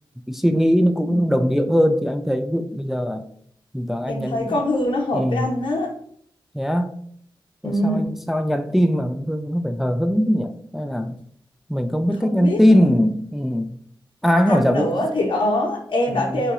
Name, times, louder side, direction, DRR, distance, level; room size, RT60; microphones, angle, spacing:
voice 1, 0.3-3.2 3.7-4.6 5.1-5.5 6.5-6.9 7.6-11.2 11.7-13.8 14.2-15.0 16.1-16.4, equal, 5° right, 7 dB, 0.3 m, -21 dB
voice 2, 4.1-5.9 7.6-8.1 12.2-12.9 14.5-16.5, left 1 dB, 75° left, -3 dB, 0.7 m, -23 dB
5.5 x 3.0 x 2.4 m, 0.64 s
cardioid pair, 70°, 9 cm